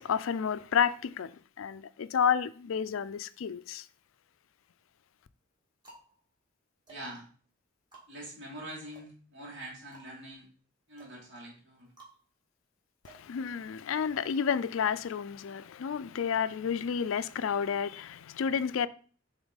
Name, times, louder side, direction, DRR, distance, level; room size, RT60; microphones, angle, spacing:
voice 1, 0.0-3.9 13.0-18.9, left 7 dB, 70° left, 0.4 m, -31 dB
sound 1, 3.9-4.6 5.3-14.0, right 3 dB, 20° right, 1.9 m, -59 dB
voice 2, 6.9-7.3 8.1-10.5 10.9-11.9, right 1 dB, 65° right, 2.7 m, -44 dB
7.0 x 3.7 x 4.0 m
head